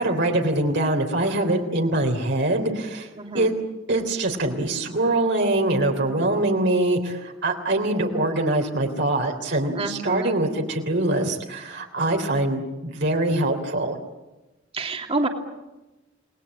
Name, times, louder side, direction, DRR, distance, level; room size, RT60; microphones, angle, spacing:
voice 1, 0.0-3.1 3.3-3.5 3.9-14.0, right 2 dB, 60° right, 2 dB, 3.4 m, -23 dB
voice 2, 3.2-3.5 6.0-6.4 9.7-10.4 14.7-15.3, right 2 dB, 30° right, 3 dB, 2.8 m, -28 dB
29.5 x 20.5 x 8.7 m, 1.1 s
head